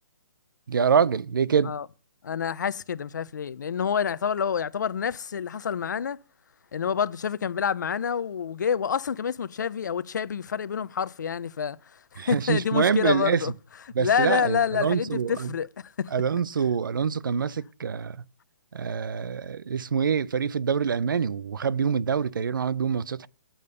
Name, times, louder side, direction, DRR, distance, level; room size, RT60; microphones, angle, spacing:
voice 1, 0.7-1.7 12.2-13.5 13.9-15.5 16.1-18.2 18.7-23.3, right 6 dB, 80° right, 0.5 m, -25 dB
voice 2, 2.2-6.2 6.7-11.8 12.1-13.5 14.0-16.1, left 7 dB, 60° left, 0.6 m, -28 dB
8.6 x 5.2 x 6.7 m
hypercardioid pair, 170°, 11 cm